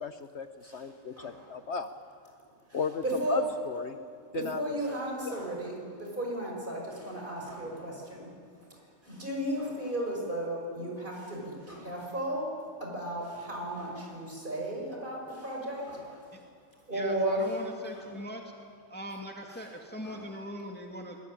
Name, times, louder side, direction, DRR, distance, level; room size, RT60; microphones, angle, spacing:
voice 1, 0.0-1.9 2.7-4.0 4.3-4.6 4.9-5.0 5.3-5.4, left 6 dB, 55° left, 9 dB, 1.1 m, -35 dB
voice 2, 1.2-1.5 2.7-3.4 4.3-8.3 9.0-12.5 12.8-16.3 16.9-17.4 20.0-20.2, right 1 dB, 35° right, -1 dB, 6.4 m, -34 dB
voice 3, 16.9-18.4 18.9-21.2, equal, 5° left, 1 dB, 2.2 m, -41 dB
24.5 x 21.5 x 10.0 m, 2.2 s
omnidirectional pair, 1.5 m